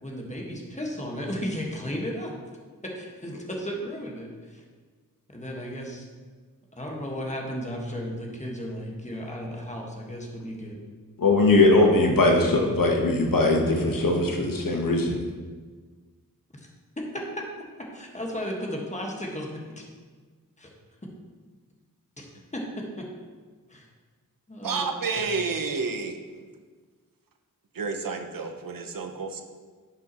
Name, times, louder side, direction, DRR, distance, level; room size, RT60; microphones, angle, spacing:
voice 1, 0.0-2.3 2.8-4.6 5.3-6.1 6.7-10.8 16.6-16.7 17.0-17.4 17.8-19.8 20.6-20.7 22.2-22.3 22.5-23.1 23.7-23.9 24.5-24.9 25.2-25.3, equal, 20° left, -1 dB, 1.6 m, -34 dB
voice 2, 11.2-15.2, left 2 dB, 65° left, 1 dB, 1.3 m, -20 dB
voice 3, 24.6-26.2 27.7-29.4, right 4 dB, 70° right, 5 dB, 0.8 m, -30 dB
10.5 x 5.8 x 3.0 m, 1.5 s
wide cardioid pair, 60°, 35 cm